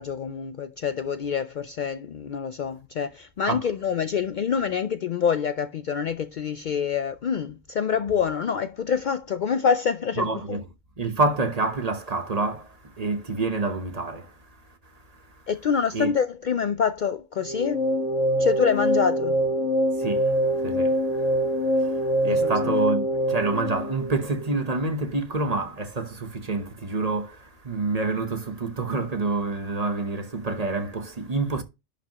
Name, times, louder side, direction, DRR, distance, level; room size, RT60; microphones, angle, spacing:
voice 1, 0.0-10.6 15.5-17.9 18.4-19.4 22.2-22.7, left 7 dB, 90° left, 0.4 m, -26 dB
voice 2, 10.2-10.6 11.0-15.4 15.9-16.1 20.0-31.6, right 3 dB, 35° right, 1.0 m, -28 dB
sound 1, 17.4-24.6, equal, 65° left, 2.1 m, -24 dB
11.0 x 5.1 x 2.9 m
omnidirectional pair, 1.4 m